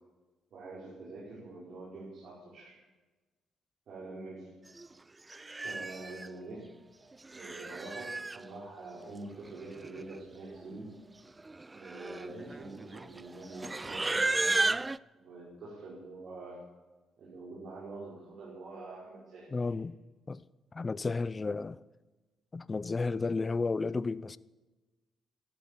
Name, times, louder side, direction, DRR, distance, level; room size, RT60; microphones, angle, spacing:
voice 1, 0.5-2.8 3.9-4.5 5.6-6.7 7.3-10.9 11.7-14.8 15.1-16.7 17.2-19.6, right 2 dB, 65° right, 5.3 m, -45 dB
Livestock farm animals working animals, 4.8-4.9 5.3-6.3 7.1-8.4 9.5-9.6 9.8-10.2 10.5-10.7 11.4-15.0, right 2 dB, 20° right, 0.4 m, -34 dB
voice 2, 19.5-20.0 20.3-20.4 20.7-21.8 22.5-24.4, left 4 dB, 30° left, 0.6 m, -32 dB
14.5 x 12.5 x 7.4 m
cardioid pair, 90°, 0 cm